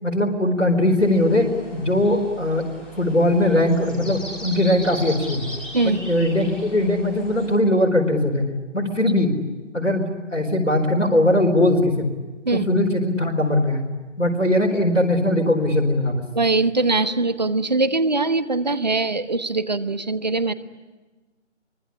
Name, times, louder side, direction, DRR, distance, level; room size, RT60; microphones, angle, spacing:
voice 1, 0.0-2.7 3.0-5.5 5.8-8.4 8.7-9.4 9.7-12.1 12.5-13.8 14.2-16.3, left 1 dB, 90° left, 1 dB, 4.5 m, -20 dB
sound 1, 1.0-7.5, equal, ahead, 2.3 m, -38 dB
voice 2, 16.3-20.5, right 3 dB, 35° right, 13 dB, 1.1 m, -22 dB
24.5 x 23.0 x 9.9 m, 1.2 s
figure-of-eight pair, 160°, 37 cm